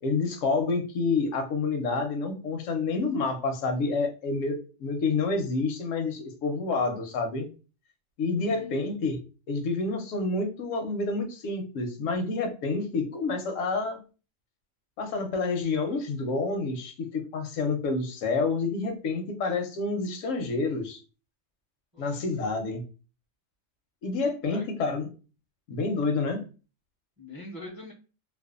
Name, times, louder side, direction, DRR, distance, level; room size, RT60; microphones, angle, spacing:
voice 1, 0.0-7.5 8.2-9.2 9.5-14.0 15.0-21.0 22.0-22.8 24.0-25.1 25.7-26.5, left 3 dB, 80° left, 5 dB, 1.0 m, -28 dB
voice 2, 8.4-8.9 21.9-22.2 24.5-24.7 27.2-27.9, left 2 dB, 25° right, -5 dB, 0.5 m, -43 dB
2.6 x 2.2 x 2.3 m, 0.35 s
omnidirectional pair, 1.3 m